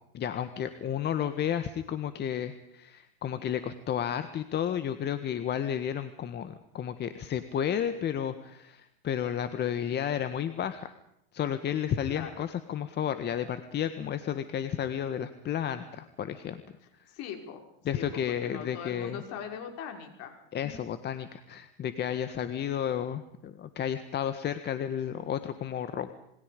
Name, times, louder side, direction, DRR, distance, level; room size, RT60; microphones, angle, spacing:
voice 1, 0.1-10.9 11.3-16.6 16.9-17.1 17.8-19.2 20.5-26.1, left 9 dB, 35° left, 10 dB, 1.6 m, -32 dB
voice 2, 17.1-17.6 17.9-20.4, left 7 dB, 55° left, 4 dB, 6.0 m, -41 dB
27.5 x 22.5 x 5.3 m, 0.80 s
supercardioid pair, 115°, 30 cm